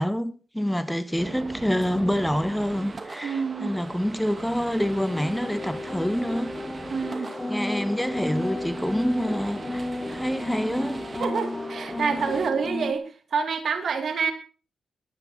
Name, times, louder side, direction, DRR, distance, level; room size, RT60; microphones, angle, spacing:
voice 1, 0.0-6.6 7.2-11.0, equal, 5° left, 1.4 m, -27 dB
sound 1, 1.2-12.5, right 3 dB, 40° right, 2.2 m, -39 dB
voice 2, 3.2-3.7 6.9-7.3 11.2-13.0 13.3-14.3, right 5 dB, 65° right, 2.5 m, -27 dB
sound 2, 4.8-12.9, left 2 dB, 20° left, 2.0 m, -33 dB
19.5 x 9.8 x 4.4 m
cardioid pair, 60°, 0 cm